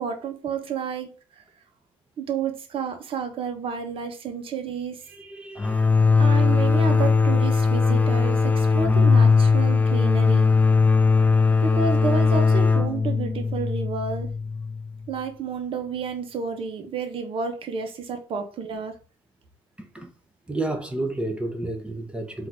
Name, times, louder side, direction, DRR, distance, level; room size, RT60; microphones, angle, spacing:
voice 1, 0.0-1.4 2.2-5.0 6.2-10.5 11.6-14.3 15.1-19.0, right 6 dB, 55° right, 1.0 m, -30 dB
voice 2, 5.1-5.8 19.8-20.1 20.5-22.5, right 2 dB, 10° right, 0.9 m, -31 dB
sound 1, 5.6-15.1, left 4 dB, 15° left, 0.5 m, -19 dB
3.8 x 2.7 x 4.5 m
cardioid pair, 90°, 11 cm